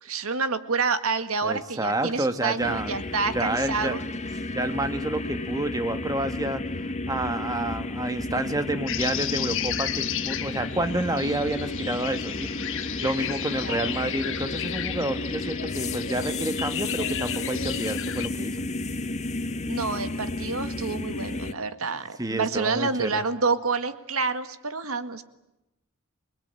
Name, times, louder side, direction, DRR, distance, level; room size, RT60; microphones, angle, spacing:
voice 1, 0.0-4.0 13.0-13.3 13.6-13.9 19.7-25.2, right 4 dB, 75° right, 10 dB, 1.8 m, -28 dB
voice 2, 1.4-3.0 3.3-4.0 4.3-6.6 7.1-18.7 22.2-23.2, right 1 dB, 15° right, 9 dB, 1.6 m, -29 dB
sound 1, 2.6-21.5, left 2 dB, 35° left, 1.2 m, -32 dB
sound 2, 8.9-18.3, left 10 dB, 65° left, 1.4 m, -33 dB
28.0 x 21.0 x 9.0 m, 0.92 s
head